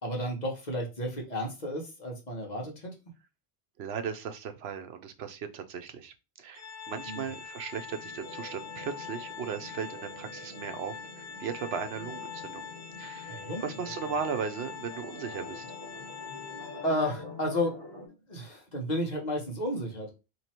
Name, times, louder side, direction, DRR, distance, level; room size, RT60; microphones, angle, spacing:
voice 1, 0.0-2.9 7.0-7.3 13.3-13.7 14.0-14.1 16.8-17.7 18.3-20.1, left 1 dB, 45° left, 0 dB, 1.2 m, -32 dB
voice 2, 3.8-12.7 13.0-15.6, right 6 dB, 80° right, 8 dB, 0.9 m, -37 dB
Organ, 6.6-17.3, left 7 dB, 85° left, 0.9 m, -44 dB
sound 1, 7.7-18.1, left 2 dB, 30° right, 1.6 m, -47 dB
3.1 x 2.9 x 4.3 m, 0.28 s
omnidirectional pair, 1.0 m